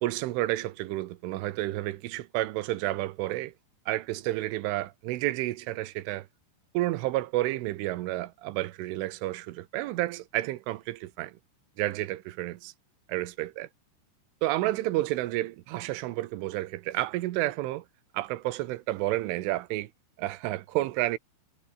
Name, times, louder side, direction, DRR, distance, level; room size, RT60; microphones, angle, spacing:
voice 1, 0.0-3.5 3.9-6.3 6.7-11.3 11.8-12.7 13.1-13.7 14.4-17.8 18.1-19.9 20.2-21.2, right 17 dB, 80° right, 3.5 m, -30 dB
omnidirectional pair, 5.6 m